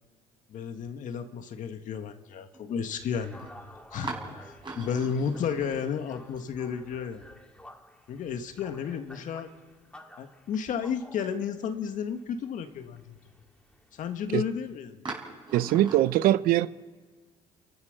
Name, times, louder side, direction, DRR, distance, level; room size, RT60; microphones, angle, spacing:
voice 1, 0.5-3.4 3.9-7.3 8.1-9.5 10.2-13.2 13.9-15.0, left 7 dB, 60° left, 7 dB, 1.6 m, -32 dB
sound 1, 2.5-2.6 3.3-3.5 4.0-6.9 7.2-7.3 8.7-9.4 9.9-10.0 10.6-10.7 15.1-16.0, right 3 dB, 30° right, 5.6 m, -41 dB
sound 2, 2.9-14.7, left 1 dB, 5° left, 2.0 m, -52 dB
voice 2, 15.5-16.7, right 14 dB, 75° right, 15 dB, 0.7 m, -22 dB
29.5 x 15.0 x 6.6 m, 1.4 s
cardioid pair, 95°, 15 cm